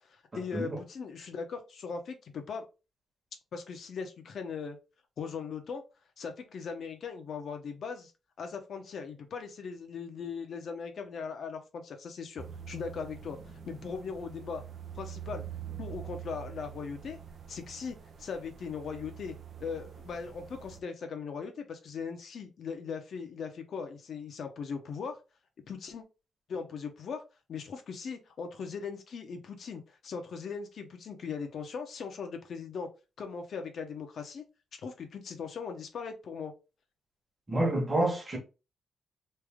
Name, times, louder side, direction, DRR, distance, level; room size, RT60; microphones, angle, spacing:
voice 1, 0.0-2.6 3.5-4.8 5.2-5.8 6.2-8.1 8.4-14.6 14.9-15.4 15.8-17.2 17.5-19.3 19.6-25.2 25.7-26.0 26.5-27.2 27.5-32.9 33.2-34.4 34.7-36.5, left 5 dB, 60° left, 0.9 m, -39 dB
sound 1, 12.4-20.8, right 9 dB, 50° right, 0.6 m, -45 dB
voice 2, 37.5-38.4, right 1 dB, 20° right, 1.2 m, -28 dB
3.3 x 2.6 x 3.6 m
cardioid pair, 135°, 0 cm